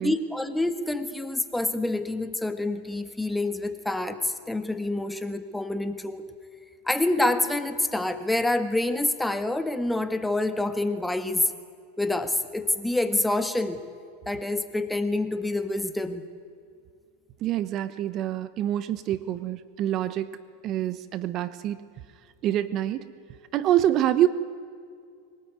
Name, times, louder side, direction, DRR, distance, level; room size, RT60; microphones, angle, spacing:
voice 1, 0.0-6.3 6.8-11.5 12.0-13.8 14.3-16.2, left 2 dB, 5° left, 9 dB, 1.5 m, -27 dB
voice 2, 17.4-20.4 20.6-21.8 22.4-23.0 23.5-24.3, right 12 dB, 45° right, 14 dB, 0.9 m, -26 dB
23.0 x 18.5 x 9.5 m, 2.3 s
hypercardioid pair, 115°, 0 cm